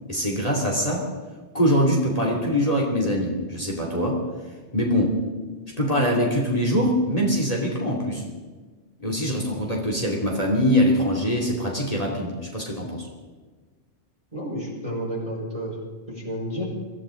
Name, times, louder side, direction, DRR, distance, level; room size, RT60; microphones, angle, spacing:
voice 1, 0.1-1.1 1.5-4.2 4.7-5.2 5.8-8.2 9.0-13.1, equal, 30° left, -1 dB, 2.9 m, -23 dB
voice 2, 14.3-15.8 16.1-16.7, equal, 30° right, -3 dB, 5.6 m, -31 dB
24.0 x 15.5 x 3.8 m, 1.4 s
omnidirectional pair, 1.2 m